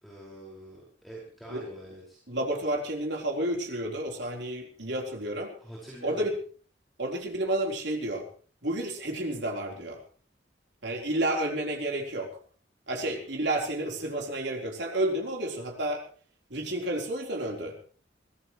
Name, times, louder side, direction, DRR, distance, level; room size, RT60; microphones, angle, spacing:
voice 1, 0.0-2.2 5.6-6.3 12.9-13.2, right 1 dB, ahead, -5 dB, 5.5 m, -45 dB
voice 2, 2.3-5.5 6.0-6.3 7.0-8.3 8.6-10.0 10.8-12.4 12.9-16.0 16.5-17.8, right 1 dB, 75° right, 1 dB, 4.1 m, -31 dB
23.0 x 17.0 x 3.2 m, 0.41 s
head